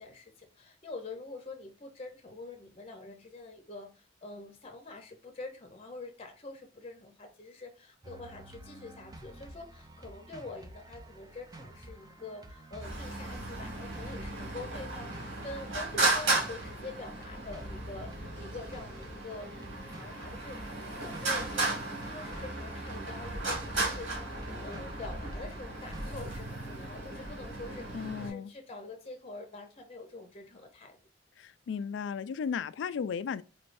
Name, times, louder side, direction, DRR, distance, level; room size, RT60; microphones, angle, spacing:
voice 1, 0.0-31.0, left 3 dB, 30° left, 0.7 m, -45 dB
sound 1, 8.0-26.2, right 1 dB, 20° right, 0.5 m, -48 dB
Traffic noise roadway noise, 12.8-28.3, right 2 dB, 85° right, 2.0 m, -35 dB
voice 2, 27.9-28.5 31.4-33.4, left 6 dB, 70° left, 0.3 m, -35 dB
4.3 x 3.2 x 2.5 m
head